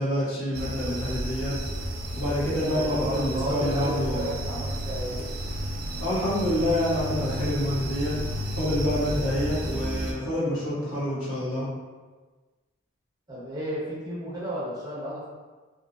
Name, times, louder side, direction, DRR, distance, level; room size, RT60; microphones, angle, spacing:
voice 1, 0.0-1.6 2.1-4.3 6.0-8.2 8.6-11.7, left 1 dB, 85° left, -8 dB, 1.1 m, -27 dB
sound 1, 0.5-10.1, right 1 dB, 45° right, 0.4 m, -32 dB
voice 2, 2.7-5.2 13.3-15.3, equal, 20° right, -8 dB, 0.7 m, -32 dB
2.7 x 2.5 x 2.4 m, 1.3 s
head